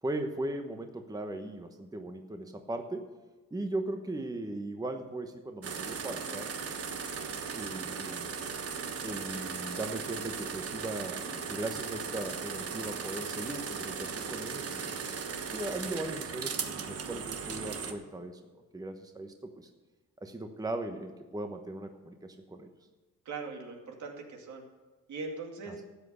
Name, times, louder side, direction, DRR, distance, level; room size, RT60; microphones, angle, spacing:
voice 1, 0.0-3.1 3.5-6.5 7.5-8.3 9.0-15.1 15.5-18.4 18.7-19.7 20.2-22.7 25.7-25.8, right 2 dB, 10° right, 6 dB, 1.1 m, -38 dB
sound 1, 5.6-17.9, right 6 dB, 50° right, 1.2 m, -37 dB
voice 2, 23.3-24.6 25.1-25.8, right 3 dB, 70° right, 2 dB, 2.4 m, -40 dB
13.0 x 7.8 x 6.8 m, 1.2 s
cardioid pair, 90°, 30 cm